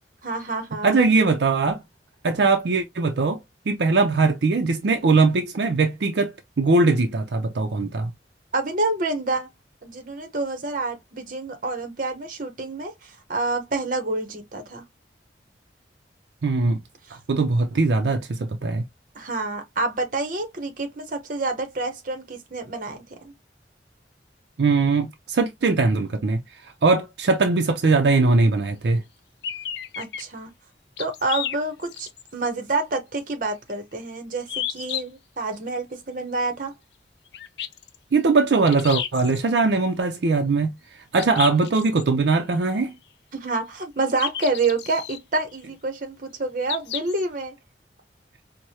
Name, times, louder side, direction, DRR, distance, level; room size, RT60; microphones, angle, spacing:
voice 1, 0.2-0.9 8.5-9.5 9.8-14.8 19.1-23.3 30.0-30.5 31.0-36.7 43.3-47.5, right 3 dB, 50° right, 0.9 m, -28 dB
voice 2, 0.8-1.8 2.2-3.4 3.7-8.1 16.4-16.8 17.3-18.9 24.6-29.0 38.1-40.8 41.1-42.9, right 3 dB, 75° right, 0.5 m, -21 dB
sound 1, 29.4-30.2 31.0-32.3 32.7-32.8 34.5-35.0 37.3-38.0 38.7-39.4 41.2-42.0 44.1-45.2 46.6-47.2, left 10 dB, 70° left, 0.5 m, -32 dB
4.7 x 2.1 x 2.7 m
head